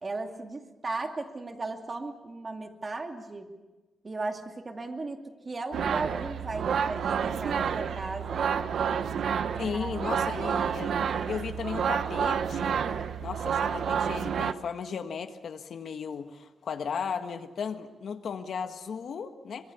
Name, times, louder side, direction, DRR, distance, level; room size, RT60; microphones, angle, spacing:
voice 1, 0.0-3.5 4.0-8.7 9.6-10.4, right 3 dB, 30° right, 4 dB, 2.4 m, -37 dB
sound 1, 5.7-14.5, right 7 dB, 80° right, 1.0 m, -29 dB
voice 2, 9.5-11.0 11.3-19.7, left 6 dB, 75° left, 7 dB, 1.5 m, -36 dB
25.0 x 22.0 x 7.0 m, 1.2 s
wide cardioid pair, 125°, 0 cm